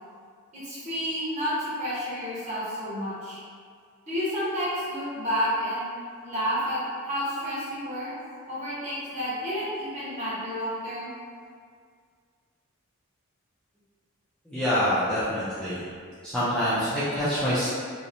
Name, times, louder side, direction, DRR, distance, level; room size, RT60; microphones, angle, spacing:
voice 1, 0.5-3.4 4.1-5.8 6.2-8.1 8.5-11.1, equal, 35° right, -10 dB, 0.8 m, -30 dB
voice 2, 14.5-15.8 16.2-17.7, equal, 5° left, -13 dB, 0.3 m, -26 dB
2.8 x 2.0 x 2.5 m, 2.1 s
head